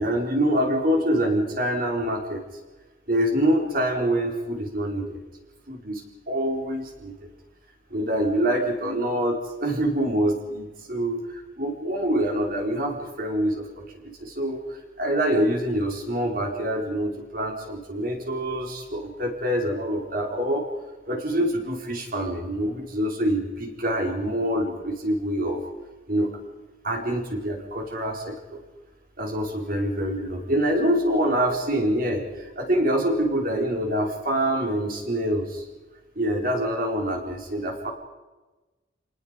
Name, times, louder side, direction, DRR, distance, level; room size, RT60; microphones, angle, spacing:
voice 1, 0.0-2.4 3.1-5.2 5.7-7.1 7.9-13.9 14.2-20.7 21.1-25.6 26.1-26.3 26.8-28.6 29.2-35.6 36.2-37.9, right 1 dB, 50° right, 2 dB, 4.4 m, -25 dB
28.0 x 19.5 x 5.2 m, 1.2 s
head